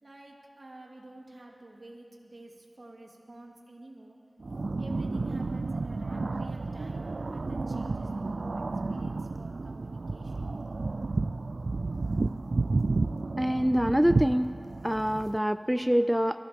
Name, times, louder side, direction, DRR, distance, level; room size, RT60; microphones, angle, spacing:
voice 1, 0.0-4.2 4.8-10.5, right 2 dB, 65° right, -1 dB, 2.1 m, -50 dB
sound 1, 4.4-15.4, right 3 dB, 80° right, 0.3 m, -31 dB
voice 2, 13.4-14.5 14.8-16.4, equal, 5° right, 9 dB, 0.3 m, -25 dB
23.5 x 15.0 x 3.6 m, 2.8 s
wide cardioid pair, 65°, 0 cm